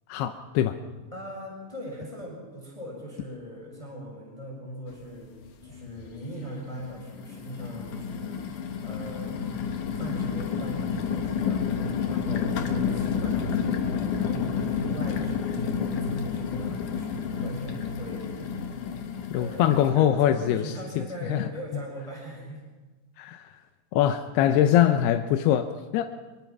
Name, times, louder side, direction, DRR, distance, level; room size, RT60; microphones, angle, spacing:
voice 1, 0.1-0.8 19.3-20.7 21.3-21.5 23.2-23.5 23.9-25.7 25.9-26.0, left 11 dB, 80° left, 7 dB, 2.8 m, -22 dB
voice 2, 1.1-5.3 5.6-8.5 8.8-9.6 9.8-18.6 19.3-22.6, equal, 10° left, -2 dB, 6.5 m, -40 dB
sound 1, 4.9-5.0 5.4-6.1 6.7-19.9, left 6 dB, 60° left, 2.7 m, -30 dB
25.0 x 23.5 x 6.0 m, 1.3 s
omnidirectional pair, 4.7 m